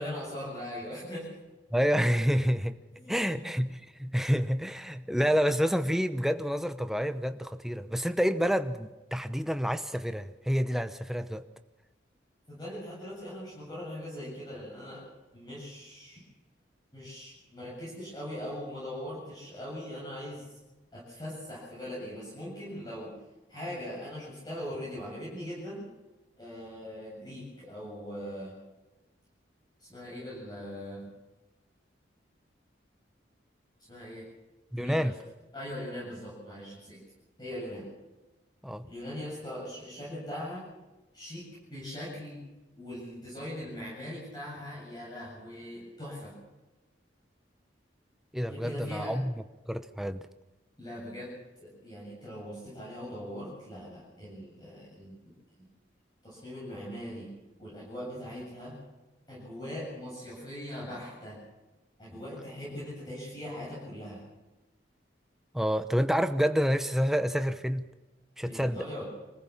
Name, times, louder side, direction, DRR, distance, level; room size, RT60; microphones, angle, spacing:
voice 1, 0.0-1.4 3.0-3.5 12.5-15.1 15.3-16.2 16.9-20.5 20.9-23.1 23.5-25.8 26.4-28.5 29.8-31.0 33.9-34.3 34.7-35.1 35.5-37.0 37.4-37.9 38.8-40.6 41.1-42.4 42.8-46.4 48.5-49.2 50.8-51.3 51.6-55.2 55.6-55.7 56.2-57.3 57.6-58.8 59.3-61.4 62.0-64.2 68.4-69.0, equal, 20° left, -7 dB, 7.9 m, -40 dB
voice 2, 1.7-2.7 3.1-11.4 34.7-35.1 38.6-38.8 48.3-50.2 65.5-67.8 68.4-68.8, equal, ahead, 9 dB, 0.9 m, -28 dB
25.5 x 15.0 x 7.2 m, 1.1 s
head